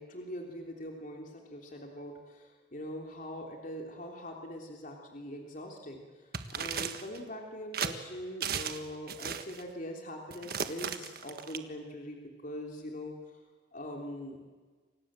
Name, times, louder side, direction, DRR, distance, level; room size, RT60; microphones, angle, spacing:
voice 1, 0.0-6.0 6.5-13.2 13.7-14.4, equal, 40° left, 1 dB, 3.5 m, -42 dB
sound 1, 6.3-7.2 7.7-7.9 8.4-8.8 9.1-9.6 10.3-11.6, right 7 dB, 50° right, 1.6 m, -35 dB
29.0 x 25.5 x 7.7 m, 1.4 s
head